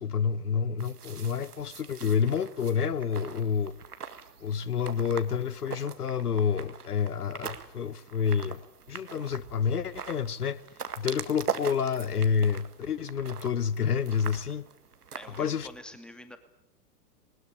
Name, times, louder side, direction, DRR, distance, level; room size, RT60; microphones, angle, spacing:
voice 1, 0.0-3.8 4.4-8.6 8.9-10.6 11.0-14.6 15.4-15.7, left 7 dB, 70° left, 1.0 m, -28 dB
sound 1, 0.8-15.8, right 6 dB, 70° right, 2.0 m, -42 dB
voice 2, 15.1-16.4, left 1 dB, ahead, 2.4 m, -46 dB
20.5 x 20.0 x 10.0 m
figure-of-eight pair, 100°, 47 cm